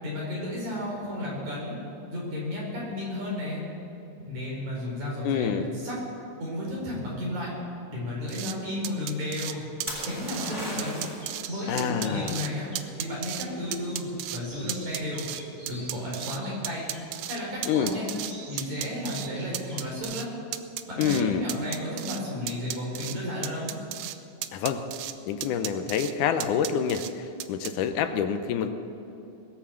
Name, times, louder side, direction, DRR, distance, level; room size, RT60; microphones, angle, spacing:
voice 1, 0.0-1.8 2.1-3.6 4.2-5.5 5.7-6.0 6.4-7.5 7.9-9.7 10.0-11.0 11.5-12.7 13.0-15.3 15.7-16.9 17.3-18.1 18.5-20.3 20.9-23.8, left 1 dB, 65° right, -4 dB, 5.7 m, -33 dB
voice 2, 5.2-5.7 11.7-12.4 17.7-17.9 21.0-21.4 24.5-24.8 25.3-28.7, left 7 dB, 80° left, 9 dB, 2.2 m, -27 dB
sound 1, 8.3-8.5 8.8-9.5 9.8-10.5 10.8-11.5 11.8-12.5 12.8-13.5 13.7-14.4 14.7-16.4 16.6-18.3 18.6-19.3 19.5-20.3 20.5-21.2 21.5-22.2 22.5-23.2 23.4-24.2 24.4-25.1 25.4-26.1 26.4-27.1 27.4-27.7, right 13 dB, 80° right, 1.5 m, -34 dB
sound 2, 9.9-11.3 15.0-15.4, equal, 10° right, 3.4 m, -36 dB
sound 3, 11.2-20.0, right 1 dB, 25° right, 3.8 m, -48 dB
20.0 x 8.6 x 7.1 m, 2.9 s
omnidirectional pair, 3.7 m